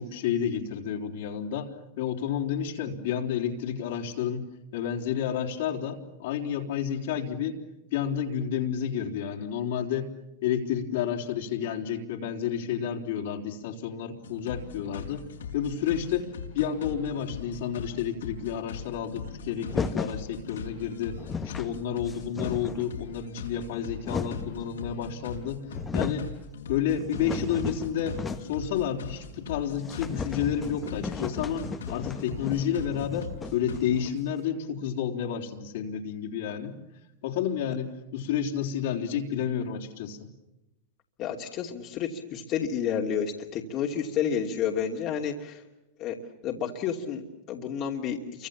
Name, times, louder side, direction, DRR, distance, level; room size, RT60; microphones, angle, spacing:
voice 1, 0.0-4.5 4.7-7.6 7.9-10.1 10.4-15.3 15.5-21.2 21.4-25.6 25.9-26.3 26.7-36.8 37.2-40.3, left 8 dB, 70° left, 1 dB, 3.8 m, -30 dB
sound 1, 14.2-33.8, left 6 dB, 85° left, 5.0 m, -41 dB
sound 2, 19.7-20.2 20.9-21.0 21.1-21.7 22.1-22.9 23.6-24.6 25.3-25.4 25.7-26.3 26.7-28.7 28.9-29.0 29.3-29.4 29.8-34.3, left 5 dB, 20° left, 1.6 m, -35 dB
voice 2, 41.2-45.6 46.0-46.2 46.4-48.5, left 8 dB, 45° left, 0 dB, 2.8 m, -30 dB
29.0 x 25.0 x 7.4 m, 0.96 s
hypercardioid pair, 110°, 0 cm